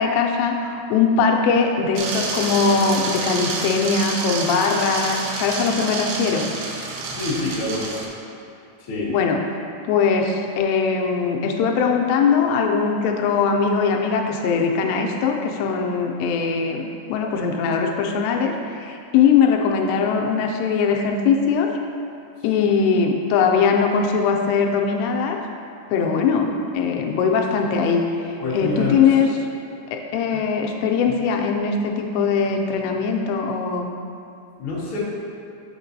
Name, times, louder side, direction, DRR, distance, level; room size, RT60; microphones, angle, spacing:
voice 1, 0.0-6.5 9.1-9.4 9.8-16.8 17.1-21.7 22.4-25.4 25.9-26.5 26.7-29.4 29.9-33.9, left 5 dB, 85° left, 2 dB, 2.7 m, -21 dB
sound 1, 2.0-8.1, right 3 dB, 90° right, 2.9 m, -28 dB
voice 2, 7.1-7.8 8.9-9.1 28.4-29.0 30.3-30.4 34.6-35.0, left 2 dB, 65° left, -9 dB, 1.3 m, -26 dB
7.1 x 6.6 x 2.6 m, 2.5 s
omnidirectional pair, 5.0 m